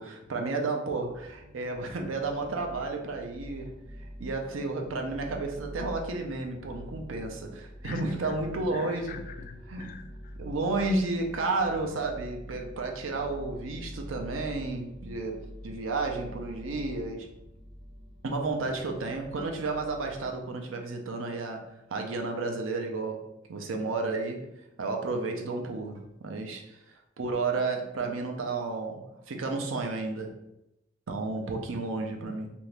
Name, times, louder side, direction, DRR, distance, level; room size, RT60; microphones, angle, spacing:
voice 1, 0.0-3.8 4.2-9.2 9.7-9.9 10.4-17.3 18.2-24.5 24.8-30.4 31.1-32.5, right 3 dB, 80° right, 3 dB, 0.5 m, -32 dB
sound 1, 1.1-20.4, equal, 20° right, 0.6 m, -46 dB
voice 2, 7.8-10.4, left 5 dB, 45° left, 6 dB, 0.3 m, -45 dB
2.8 x 2.5 x 3.2 m, 0.87 s
head